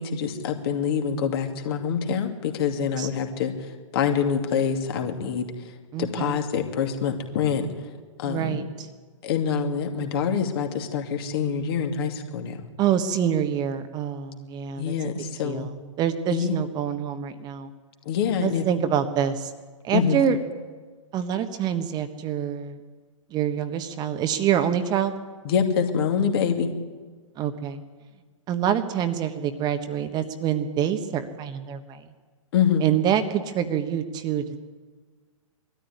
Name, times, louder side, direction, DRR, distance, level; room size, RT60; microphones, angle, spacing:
voice 1, 0.0-3.5 3.9-5.5 6.0-7.7 8.2-8.7 9.2-12.6 14.8-15.7 16.3-16.5 18.1-18.6 19.9-20.2 25.4-26.7 32.5-32.8, left 7 dB, 45° left, 5 dB, 2.5 m, -25 dB
voice 2, 5.9-6.4 8.2-8.9 12.8-14.9 15.4-15.7 16.0-17.7 18.4-19.5 19.8-20.4 21.1-22.8 23.3-25.1 27.4-27.8 28.5-32.0 32.8-34.6, right 9 dB, 25° right, 8 dB, 1.3 m, -26 dB
22.0 x 13.5 x 9.6 m, 1.4 s
figure-of-eight pair, 120°, 17 cm